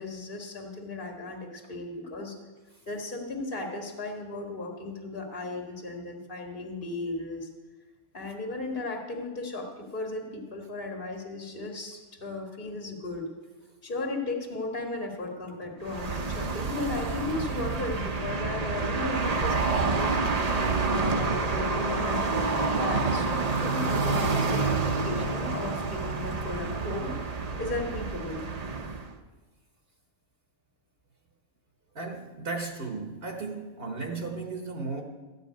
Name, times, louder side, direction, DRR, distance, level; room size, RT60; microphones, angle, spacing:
voice 1, 0.0-2.4 2.9-7.5 8.1-13.3 13.8-20.2 20.9-28.4, left 2 dB, 45° left, 2 dB, 1.9 m, -36 dB
sound 1, 15.8-29.1, right 3 dB, 35° right, 0.8 m, -28 dB
voice 2, 31.9-35.0, right 3 dB, 55° right, 2 dB, 1.3 m, -35 dB
14.5 x 5.5 x 9.3 m, 1.3 s
omnidirectional pair, 1.3 m